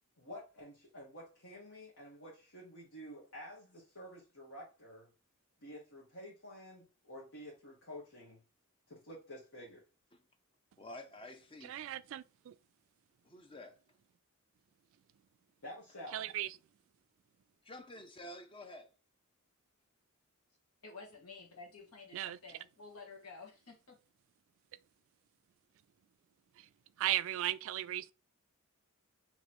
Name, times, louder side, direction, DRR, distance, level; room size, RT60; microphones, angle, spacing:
voice 1, 0.2-5.1 5.6-8.4 8.9-9.8 15.6-16.3, equal, 70° left, 1.2 m, -50 dB
voice 2, 10.8-11.8 13.2-13.8 17.6-18.9, left 1 dB, 25° left, 0.5 m, -50 dB
voice 3, 11.6-12.6 16.1-16.6 22.1-22.4 26.5-26.7 27.0-28.1, right 13 dB, 65° right, 0.3 m, -36 dB
voice 4, 20.8-23.9, left 4 dB, 90° left, 1.4 m, -52 dB
3.0 x 2.9 x 4.2 m
head